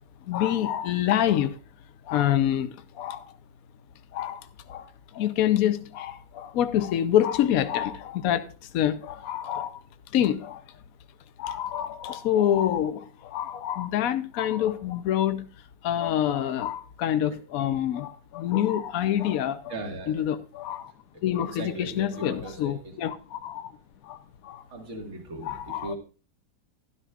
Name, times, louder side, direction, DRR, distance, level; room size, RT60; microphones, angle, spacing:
voice 1, 0.2-1.6 2.0-3.3 4.1-4.4 4.7-9.8 10.1-10.6 11.4-15.5 15.8-19.7 20.1-20.9 21.2-23.7 24.0-24.2 24.4-24.6 25.4-25.9, left 11 dB, 60° left, 1.0 m, -27 dB
voice 2, 19.7-20.3 21.1-22.9 24.7-26.0, right 2 dB, 40° right, 2.1 m, -38 dB
12.5 x 12.0 x 2.4 m
omnidirectional pair, 2.0 m